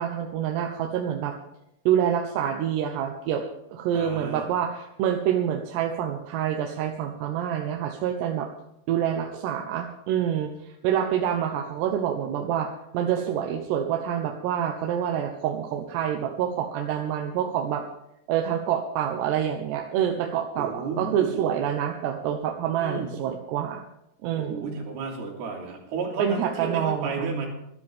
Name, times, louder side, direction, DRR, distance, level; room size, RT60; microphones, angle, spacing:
voice 1, 0.0-1.3 1.9-3.4 3.7-8.5 8.9-17.8 18.3-23.8 24.2-24.7 26.2-27.3, right 9 dB, 85° right, 4 dB, 3.2 m, -27 dB
voice 2, 3.9-4.5 20.6-21.4 22.8-23.1 24.4-27.5, right 4 dB, 70° right, 0 dB, 4.9 m, -32 dB
24.5 x 10.5 x 3.6 m, 0.82 s
omnidirectional pair, 4.8 m